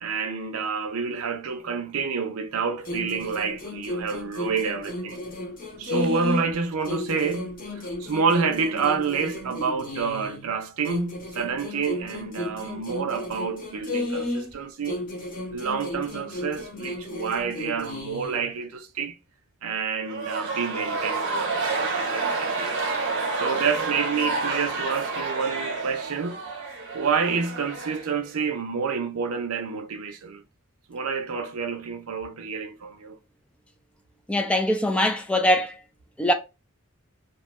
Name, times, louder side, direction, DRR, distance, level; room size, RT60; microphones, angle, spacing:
voice 1, 0.0-5.2 5.8-15.1 15.5-19.2 19.6-22.8 23.4-26.4 26.9-30.4 30.9-33.2, right 5 dB, 85° right, 0.5 m, -28 dB
sound 1, 2.8-6.5 6.8-10.5 10.8-14.5 14.8-18.5, left 2 dB, 40° left, 0.8 m, -34 dB
sound 2, 20.0-28.5, right 3 dB, 60° right, 0.8 m, -29 dB
voice 2, 34.3-35.7 36.2-36.3, left 1 dB, 5° left, 0.3 m, -22 dB
2.7 x 2.2 x 2.9 m
head